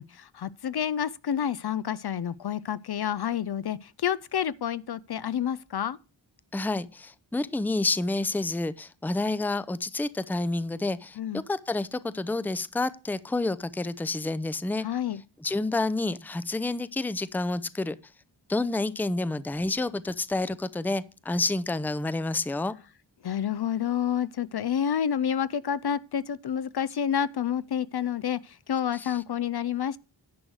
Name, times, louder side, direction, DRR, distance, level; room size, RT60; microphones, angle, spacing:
voice 1, 0.0-6.0 11.2-11.4 14.8-15.2 23.2-30.0, left 9 dB, 60° left, 0.5 m, -29 dB
voice 2, 6.5-11.2 11.5-14.9 15.4-18.0 18.5-22.7 28.9-29.2, left 2 dB, 5° left, 0.5 m, -29 dB
10.5 x 6.3 x 4.7 m
wide cardioid pair, 60°, 45 cm